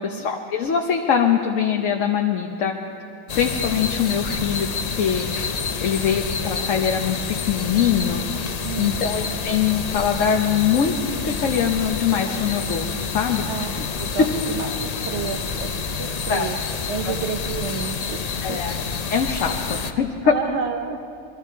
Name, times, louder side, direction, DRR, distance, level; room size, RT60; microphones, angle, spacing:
voice 1, 0.0-2.7 3.3-4.7 5.0-5.2 5.8-8.2 8.8-10.9 11.2-13.8 16.3-16.5 17.0-17.1 18.4-18.8 19.1-20.3, left 8 dB, 75° left, 2 dB, 1.2 m, -22 dB
sound 1, 3.3-19.9, left 5 dB, 45° left, 0.5 m, -28 dB
voice 2, 8.6-9.0 13.5-13.7 14.0-15.7 16.0-16.6 16.9-18.6 20.2-21.0, right 7 dB, 65° right, 6 dB, 0.9 m, -30 dB
22.5 x 13.0 x 4.5 m, 2.6 s
omnidirectional pair, 1.3 m